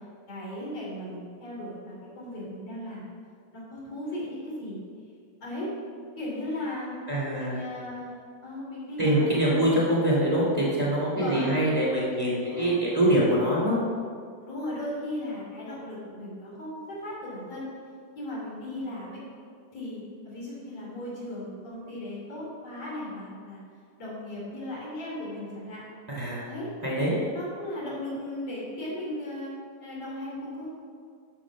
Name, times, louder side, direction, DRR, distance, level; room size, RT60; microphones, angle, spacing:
voice 1, 0.3-3.1 3.5-4.8 5.4-5.7 6.2-7.1 7.3-8.2 8.4-9.7 11.2-11.7 12.4-12.8 14.4-17.7 18.2-19.2 19.7-23.6 24.0-25.8 26.5-26.7 27.3-29.5 29.8-30.7, left 1 dB, 40° left, -7 dB, 4.2 m, -36 dB
voice 2, 7.1-7.6 9.0-13.8 26.1-26.4 26.8-27.1, right 1 dB, 15° right, -5 dB, 1.7 m, -24 dB
12.5 x 5.9 x 6.1 m, 2.2 s
omnidirectional pair, 4.1 m